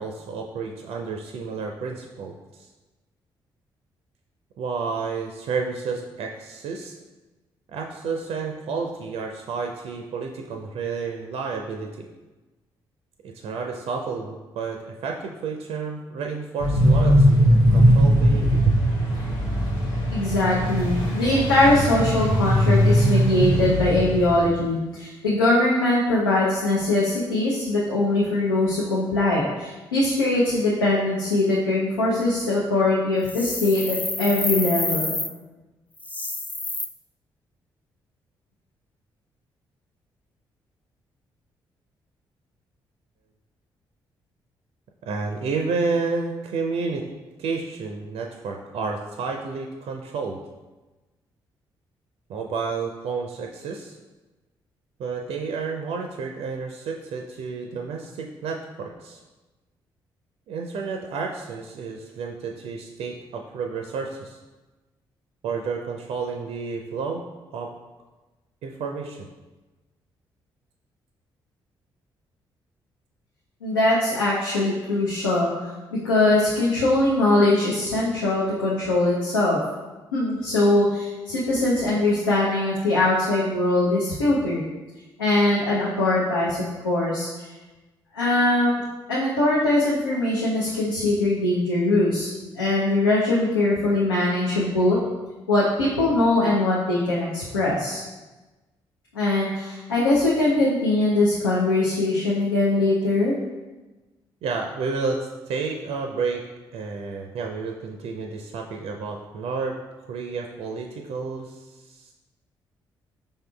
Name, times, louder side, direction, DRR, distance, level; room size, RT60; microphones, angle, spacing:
voice 1, 0.0-2.7 4.6-6.9 7.7-12.1 13.2-18.8 45.0-47.1 47.4-50.4 52.3-54.0 55.0-59.2 60.5-64.4 65.4-67.2 67.5-67.7 68.6-69.3 104.4-106.5 106.7-109.8 110.1-112.1, right 4 dB, 60° right, 2 dB, 0.4 m, -30 dB
sound 1, 16.6-24.5, equal, 70° left, 0.9 m, -20 dB
voice 2, 20.1-35.1 73.6-75.5 75.9-79.6 80.1-84.7 85.2-87.5 88.1-88.8 89.1-92.3 92.5-95.0 95.5-98.0 99.1-103.3, left 2 dB, 90° left, -7 dB, 0.5 m, -22 dB
sound 2, 33.2-35.3 36.0-36.8, left 2 dB, 15° left, 0.4 m, -28 dB
5.2 x 3.6 x 2.3 m, 1.2 s
figure-of-eight pair, 40°, 12 cm